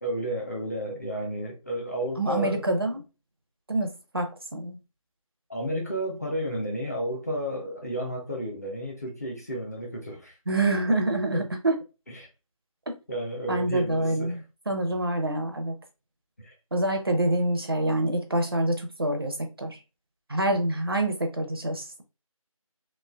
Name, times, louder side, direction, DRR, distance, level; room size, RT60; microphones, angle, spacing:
voice 1, 0.0-2.6 5.5-10.3 11.3-11.4 12.1-12.3 13.1-14.4 16.4-16.5, equal, 30° left, 0.6 m, -32 dB
voice 2, 2.2-3.0 3.7-4.8 10.5-11.7 12.9-13.0 13.5-15.7 16.7-19.8 20.3-22.0, right 1 dB, 40° right, 0.5 m, -26 dB
3.1 x 2.4 x 2.2 m
figure-of-eight pair, 165°, 18 cm